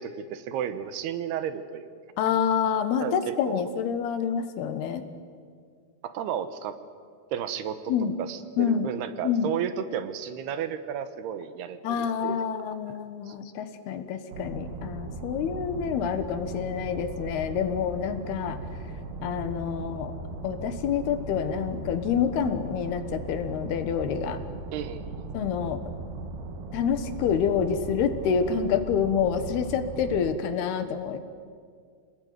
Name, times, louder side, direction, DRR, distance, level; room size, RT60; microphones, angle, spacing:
voice 1, 0.0-1.9 3.0-3.7 6.0-6.8 7.3-7.9 8.2-12.4 13.3-13.4 24.7-25.3, right 8 dB, 75° right, 11 dB, 3.0 m, -33 dB
voice 2, 2.2-5.1 7.9-8.1 8.6-8.9 9.2-9.5 11.8-18.6 19.2-20.1 20.4-24.4 25.3-25.8 26.7-31.2, left 7 dB, 75° left, 10 dB, 3.2 m, -27 dB
sound 1, 14.3-30.3, right 2 dB, 55° right, 3.0 m, -38 dB
26.5 x 19.5 x 9.5 m, 2.1 s
omnidirectional pair, 4.8 m